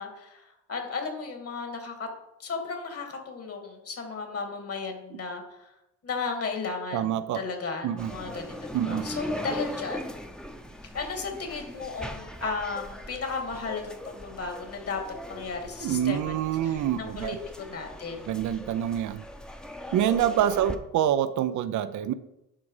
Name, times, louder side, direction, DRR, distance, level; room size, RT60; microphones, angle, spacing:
voice 1, 0.0-2.1 2.4-5.7 6.0-10.0 10.9-15.0 15.3-16.3 16.6-18.3, left 4 dB, 50° left, 3 dB, 2.6 m, -35 dB
voice 2, 6.9-7.4 7.8-8.1 8.7-9.1 15.8-17.4 18.3-19.2 19.9-22.1, right 10 dB, 75° right, 12 dB, 0.7 m, -26 dB
sound 1, 8.0-20.8, left 1 dB, 5° left, 0.9 m, -40 dB
11.0 x 5.0 x 5.0 m, 0.88 s
cardioid pair, 90°, 30 cm